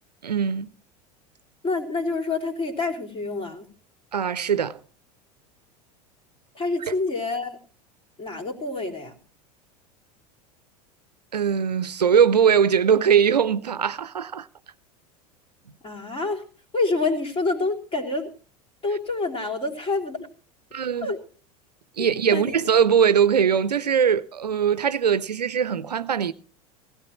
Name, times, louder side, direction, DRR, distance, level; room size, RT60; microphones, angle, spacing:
voice 1, 0.2-0.7 4.1-4.8 11.3-14.5 20.7-21.1 22.0-26.3, right 7 dB, 85° right, 0.6 m, -21 dB
voice 2, 1.6-3.7 6.5-7.6 8.2-9.1 15.8-16.4 16.7-18.3 18.8-20.3 21.0-21.2 22.0-22.6, left 3 dB, 25° left, 3.1 m, -27 dB
17.0 x 16.0 x 3.0 m
figure-of-eight pair, 80°, 20 cm